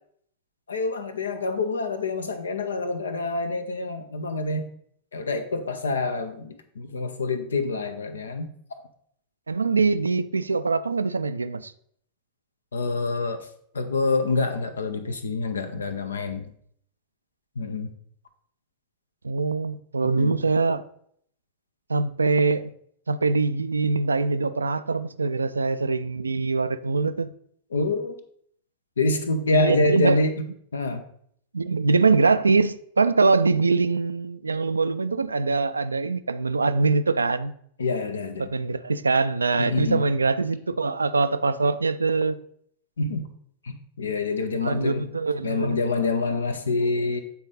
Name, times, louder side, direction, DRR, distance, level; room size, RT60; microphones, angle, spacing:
voice 1, 0.7-4.6 5.1-8.5 12.7-13.5 13.7-16.5 17.6-17.9 20.0-20.4 27.7-28.2 29.0-30.3 30.7-31.0 37.8-38.5 39.6-40.0 43.0-43.3 43.6-45.1 45.4-47.2, left 3 dB, 70° left, 0.7 m, -26 dB
voice 2, 9.5-11.7 19.2-20.8 21.9-22.7 23.1-27.3 29.5-30.2 31.5-37.5 38.4-42.4 44.6-45.8, right 4 dB, 75° right, 0.3 m, -23 dB
8.3 x 4.0 x 3.9 m
figure-of-eight pair, 90°, 0 cm